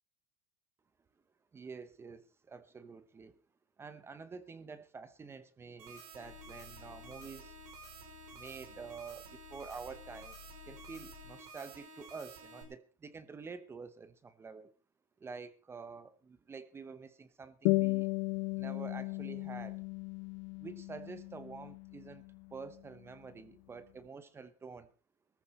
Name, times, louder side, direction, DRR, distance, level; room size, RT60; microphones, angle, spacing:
voice 1, 1.5-3.4 3.8-7.6 8.3-10.4 10.6-14.7 15.2-18.1 18.5-19.8 20.6-22.2 22.5-24.9, right 5 dB, 10° right, 0.8 m, -48 dB
sound 1, 5.8-12.6, right 3 dB, 75° right, 6.2 m, -52 dB
sound 2, 6.2-11.5, left 13 dB, 75° left, 1.2 m, -56 dB
sound 3, 17.6-22.6, left 23 dB, 55° left, 0.7 m, -35 dB
21.5 x 14.5 x 3.2 m
supercardioid pair, 165°, 19 cm